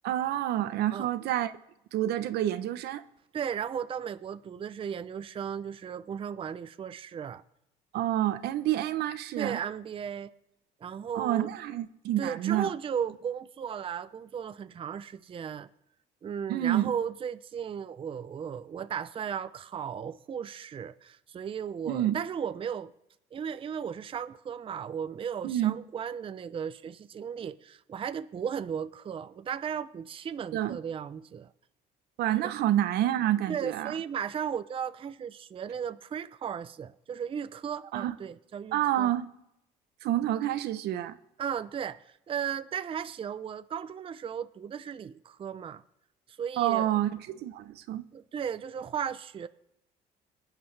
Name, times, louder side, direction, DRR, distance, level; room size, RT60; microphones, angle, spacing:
voice 1, 0.0-1.5 1.9-3.0 7.9-9.6 11.1-12.7 16.5-16.9 21.9-22.2 25.4-25.7 30.5-30.8 32.2-33.9 37.9-38.2 38.7-39.3 40.0-41.2 46.6-48.1, right 12 dB, 75° right, 0.8 m, -28 dB
voice 2, 3.3-7.4 9.4-10.3 10.8-11.5 12.2-15.7 16.2-22.9 23.3-31.5 32.4-32.5 33.5-39.1 41.4-45.8 46.4-46.9 48.1-49.5, right 8 dB, 30° right, 0.5 m, -35 dB
25.0 x 9.1 x 3.3 m
cardioid pair, 110°, 17 cm